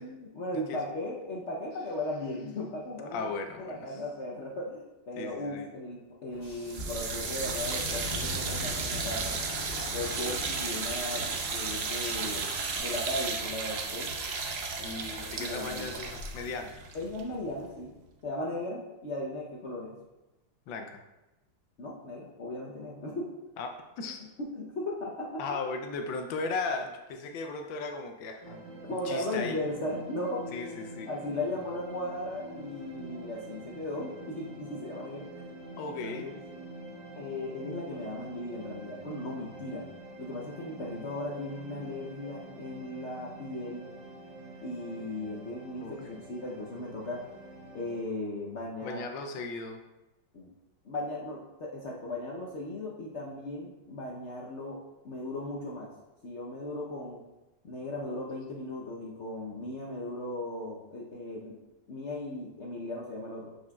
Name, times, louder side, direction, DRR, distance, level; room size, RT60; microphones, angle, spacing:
voice 1, 0.0-3.2 3.6-9.4 9.9-11.3 11.5-12.5 12.8-14.1 15.4-15.9 16.9-17.9 18.2-20.0 21.8-23.3 24.4-25.4 28.9-30.5 31.1-35.4 36.0-36.4 37.2-39.9 40.2-43.8 44.6-47.2 47.7-49.0 50.3-50.5 50.8-55.9 56.2-57.2 57.6-61.5 61.9-63.5, left 1 dB, 55° left, -3 dB, 0.8 m, -37 dB
voice 2, 3.1-4.0 5.2-5.7 14.8-16.8 20.7-21.0 23.6-24.2 25.4-29.6 30.5-31.1 35.8-36.3 45.8-46.1 48.8-49.8, left 4 dB, 85° left, 5 dB, 1.4 m, -37 dB
sound 1, 6.3-12.8, left 2 dB, 20° left, 1.4 m, -42 dB
sound 2, 6.7-17.8, right 4 dB, 65° right, 0.6 m, -34 dB
sound 3, 28.4-48.0, right 1 dB, 30° right, 1.0 m, -46 dB
7.3 x 6.3 x 2.3 m, 1.0 s
omnidirectional pair, 2.0 m